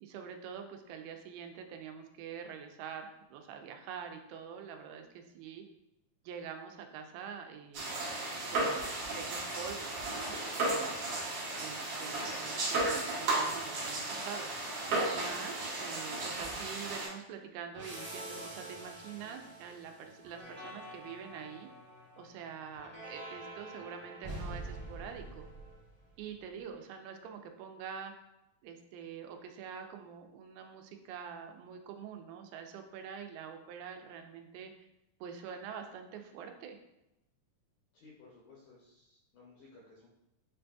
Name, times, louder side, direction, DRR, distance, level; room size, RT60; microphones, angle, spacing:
voice 1, 0.0-5.6 6.3-7.9 8.5-8.8 9.2-10.4 10.6-11.0 11.6-15.5 15.8-21.7 22.2-25.5 26.2-28.1 28.6-34.7 35.2-36.8, right 7 dB, 90° right, 5 dB, 2.3 m, -45 dB
sound 1, 7.7-17.1, right 2 dB, 70° right, 1.3 m, -34 dB
sound 2, 17.7-26.2, right 1 dB, 45° right, 0.9 m, -46 dB
voice 2, 37.9-40.1, left 3 dB, 85° left, -4 dB, 1.6 m, -58 dB
7.6 x 2.6 x 2.2 m, 0.89 s
omnidirectional pair, 4.1 m